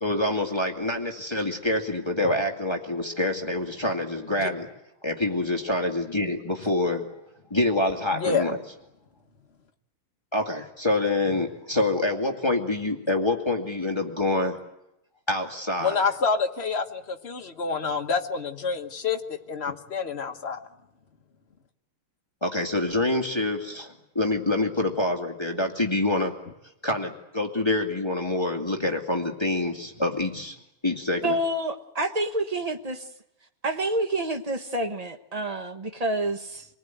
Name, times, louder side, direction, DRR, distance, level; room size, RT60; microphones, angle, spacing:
voice 1, 0.0-4.7 5.0-7.1 7.5-8.6 10.3-14.6 15.3-16.0 22.4-26.3 26.8-30.6 30.8-31.4, left 2 dB, 10° left, 2.1 m, -26 dB
voice 2, 8.1-8.5 15.8-20.6, left 5 dB, 35° left, 1.4 m, -28 dB
voice 3, 31.2-33.0 33.6-36.7, right 1 dB, 35° right, 0.6 m, -28 dB
27.0 x 19.5 x 9.2 m
omnidirectional pair, 2.4 m